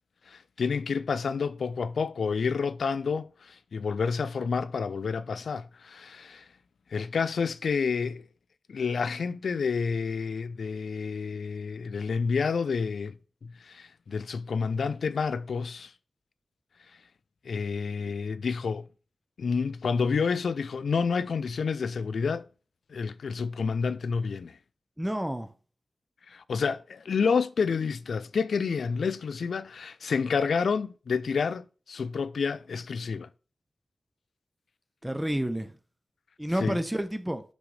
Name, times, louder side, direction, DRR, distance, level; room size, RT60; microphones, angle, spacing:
voice 1, 0.3-6.4 6.9-8.2 8.7-13.1 13.4-15.9 17.5-18.9 19.4-22.5 22.9-24.5 26.3-33.3 36.6-36.8, left 5 dB, 80° left, 0.3 m, -29 dB
voice 2, 25.0-25.5 35.0-35.7 36.4-37.4, equal, 5° right, 0.6 m, -29 dB
6.0 x 5.2 x 3.2 m
wide cardioid pair, 100°, 0 cm